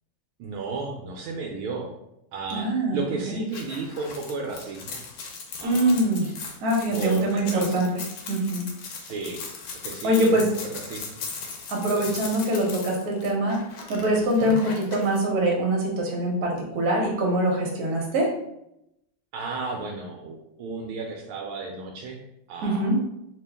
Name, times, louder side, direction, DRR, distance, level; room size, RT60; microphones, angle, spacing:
voice 1, 0.4-1.9 2.3-5.0 5.6-6.3 6.9-7.8 9.0-9.4 9.8-11.1 11.9-12.3 14.4-14.6 19.3-22.2 22.5-22.9, right 4 dB, 80° right, 1 dB, 1.4 m, -34 dB
voice 2, 2.5-3.0 3.3-3.4 5.6-6.3 6.6-8.0 8.3-8.7 10.0-10.4 11.7-13.6 13.9-18.3 22.6-22.9, right 1 dB, 55° right, -1 dB, 1.2 m, -23 dB
sound 1, 3.5-15.2, left 5 dB, 80° left, 1.6 m, -38 dB
3.6 x 2.9 x 3.4 m, 0.82 s
omnidirectional pair, 2.4 m